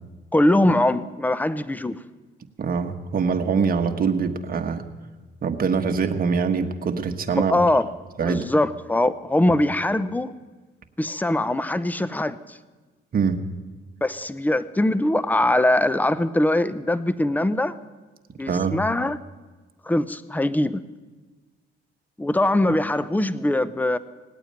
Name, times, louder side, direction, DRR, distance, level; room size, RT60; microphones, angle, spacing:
voice 1, 0.3-2.0 7.5-7.9 8.2-10.3 11.0-12.4 14.0-17.8 18.4-19.2 19.9-20.8 22.2-24.0, left 1 dB, 10° left, 15 dB, 0.7 m, -22 dB
voice 2, 2.6-4.8 5.4-7.6 8.2-8.5 9.5-9.6 13.1-13.4 18.5-18.8, right 5 dB, 45° right, 5 dB, 1.3 m, -23 dB
18.5 x 8.9 x 8.8 m, 1.3 s
cardioid pair, 90°, 20 cm